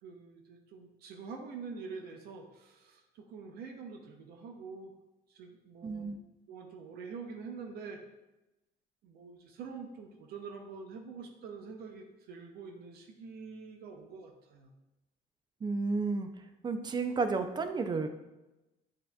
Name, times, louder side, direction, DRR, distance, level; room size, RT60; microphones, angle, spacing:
voice 1, 0.0-4.9 5.3-6.0 6.5-8.0 9.0-14.7, right 5 dB, 65° right, 2 dB, 0.6 m, -46 dB
voice 2, 5.8-6.2 15.6-16.3 16.6-18.1, right 4 dB, 25° right, 8 dB, 0.4 m, -32 dB
7.4 x 2.7 x 2.3 m, 1.0 s
cardioid pair, 110°, 17 cm